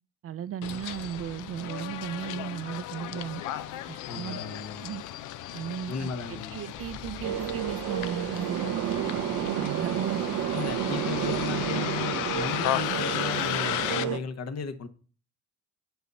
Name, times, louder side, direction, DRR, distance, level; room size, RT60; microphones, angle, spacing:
voice 1, 0.2-3.4 3.9-4.4 4.8-5.0 5.5-8.7 9.1-10.3, right 9 dB, 50° right, 0.5 m, -36 dB
Bus, 0.6-14.0, left 13 dB, 90° left, 0.6 m, -35 dB
voice 2, 4.1-4.9 5.9-6.6 10.5-14.9, left 5 dB, 55° left, 1.1 m, -35 dB
sound 1, 6.7-11.6, left 3 dB, 40° left, 2.5 m, -50 dB
sound 2, 7.2-14.2, right 10 dB, 80° right, 0.7 m, -31 dB
8.0 x 4.0 x 6.8 m
cardioid pair, 90°, 30 cm